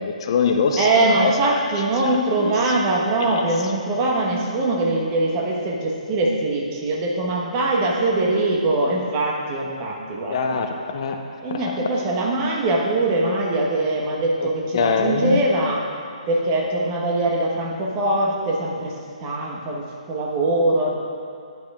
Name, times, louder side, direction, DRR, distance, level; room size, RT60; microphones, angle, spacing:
voice 1, 0.0-1.5 2.3-2.7 3.2-3.3 10.3-11.2 14.4-14.5 14.7-15.4, left 5 dB, 45° left, 4 dB, 0.6 m, -23 dB
voice 2, 0.8-10.6 11.4-15.9 16.3-20.9, right 2 dB, 25° right, -2 dB, 1.2 m, -22 dB
10.5 x 9.6 x 2.5 m, 2.5 s
figure-of-eight pair, 135°, 4 cm